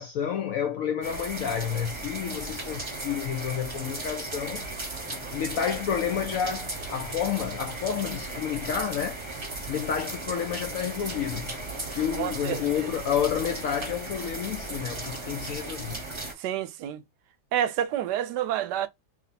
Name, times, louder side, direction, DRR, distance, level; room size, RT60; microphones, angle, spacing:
voice 1, 0.0-4.7 5.1-9.2 9.7-11.6 11.9-16.0, left 8 dB, 70° left, 0.8 m, -30 dB
sound 1, 1.0-16.3, right 2 dB, 25° right, 0.7 m, -36 dB
voice 2, 12.1-12.6 16.4-17.0 17.5-18.9, right 11 dB, 75° right, 1.1 m, -28 dB
3.2 x 2.8 x 4.0 m
omnidirectional pair, 1.9 m